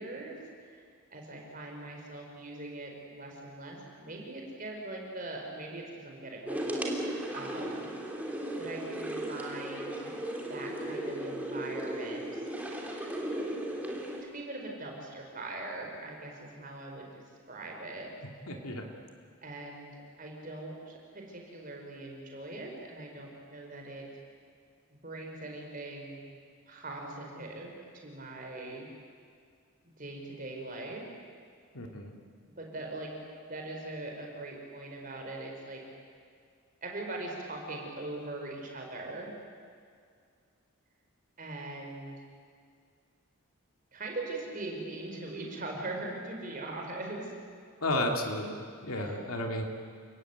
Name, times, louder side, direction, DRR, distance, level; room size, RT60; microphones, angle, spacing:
voice 1, 0.0-7.8 8.6-10.2 10.5-12.5 14.3-18.1 18.4-18.5 19.4-24.0 24.9-26.2 26.7-28.9 30.0-31.0 32.6-33.1 33.4-35.8 36.8-39.3 41.4-42.2 43.9-47.3 48.9-49.2, right 2 dB, 40° right, 1 dB, 4.8 m, -41 dB
sound 1, 6.5-14.2, right 1 dB, 5° right, 2.9 m, -36 dB
voice 2, 18.5-18.9 31.7-32.1 47.8-49.6, left 1 dB, 90° left, 2 dB, 2.7 m, -32 dB
29.5 x 17.0 x 9.3 m, 2.2 s
head